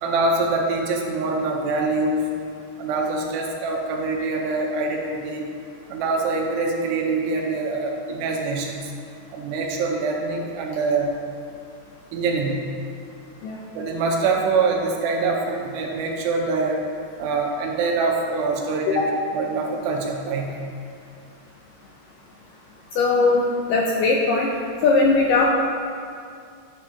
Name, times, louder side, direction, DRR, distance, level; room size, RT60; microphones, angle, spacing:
voice 1, 0.0-2.2 2.8-5.5 5.9-8.9 9.3-11.1 12.1-12.6 13.8-16.8 17.2-20.6, right 3 dB, 85° right, 0 dB, 3.2 m, -24 dB
voice 2, 23.0-23.4 23.7-24.5 24.8-25.5, left 3 dB, 80° left, -2 dB, 2.0 m, -19 dB
13.0 x 8.2 x 2.9 m, 2.3 s
omnidirectional pair, 4.7 m